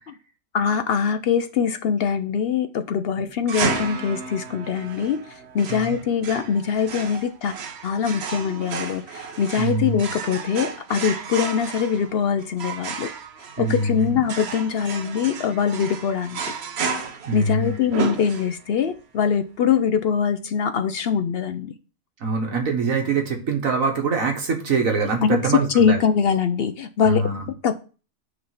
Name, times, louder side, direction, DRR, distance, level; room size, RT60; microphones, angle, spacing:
voice 1, 0.5-5.2 5.5-7.5 7.8-13.1 13.6-16.4 17.3-21.7 25.2-25.4 25.7-27.2 27.6-27.8, left 7 dB, 65° left, 9 dB, 0.6 m, -23 dB
sound 1, 3.5-18.8, right 5 dB, 55° right, 1.0 m, -32 dB
voice 2, 9.6-10.1 13.6-14.2 17.3-17.7 22.2-26.0 27.0-27.5, right 4 dB, 75° right, 3 dB, 1.7 m, -24 dB
8.8 x 3.3 x 5.6 m, 0.36 s
omnidirectional pair, 1.4 m